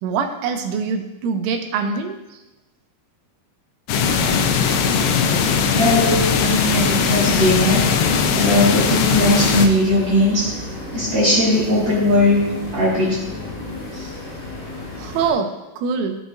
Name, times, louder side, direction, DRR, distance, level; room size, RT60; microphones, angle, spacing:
voice 1, 0.0-2.4 15.0-16.2, right 5 dB, 85° right, 5 dB, 3.3 m, -24 dB
sound 1, 3.9-9.7, left 6 dB, 90° left, 2.3 m, -19 dB
sound 2, 5.2-15.3, left 2 dB, 55° left, 4.2 m, -33 dB
voice 2, 5.7-7.9 8.3-10.5 10.9-13.2, left 1 dB, 55° right, -8 dB, 1.2 m, -18 dB
13.5 x 6.1 x 2.6 m, 1.0 s
omnidirectional pair, 5.6 m